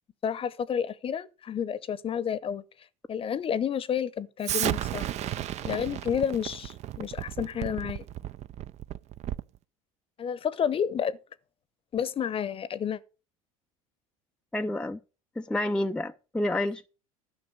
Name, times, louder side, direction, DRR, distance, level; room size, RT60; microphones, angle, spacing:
voice 1, 0.2-2.6 3.1-5.1 5.6-8.1 10.2-11.2 11.9-13.0, left 8 dB, 30° left, 0.9 m, -30 dB
Explosion, 4.4-9.6, right 12 dB, 40° right, 0.6 m, -33 dB
voice 2, 14.5-15.0 15.4-16.9, left 1 dB, 5° left, 0.5 m, -29 dB
12.5 x 5.9 x 6.4 m
hypercardioid pair, 80°, 18 cm